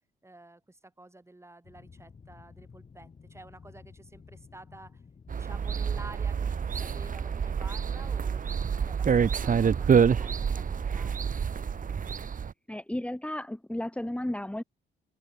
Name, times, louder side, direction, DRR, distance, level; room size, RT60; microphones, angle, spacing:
voice 1, 0.2-5.0 5.3-8.4 8.8-11.3, right 2 dB, 15° right, 6.2 m, -50 dB
sound 1, 1.6-12.3, left 5 dB, 35° left, 5.3 m, -52 dB
sound 2, 5.3-12.5, right 7 dB, 45° right, 1.8 m, -27 dB
voice 2, 12.7-14.6, left 1 dB, 5° left, 3.9 m, -33 dB
open air
cardioid pair, 90°, 20 cm